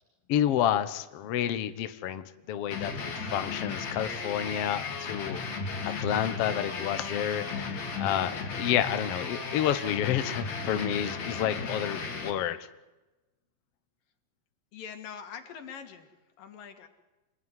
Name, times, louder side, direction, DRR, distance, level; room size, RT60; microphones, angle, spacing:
voice 1, 0.3-5.4 5.8-12.6, left 10 dB, 85° left, 11 dB, 1.3 m, -30 dB
sound 1, 2.7-12.3, left 4 dB, 45° left, 4.3 m, -35 dB
voice 2, 14.7-16.1 16.4-16.9, left 7 dB, 60° left, 6 dB, 3.9 m, -43 dB
28.5 x 20.0 x 9.8 m, 1.1 s
omnidirectional pair, 4.5 m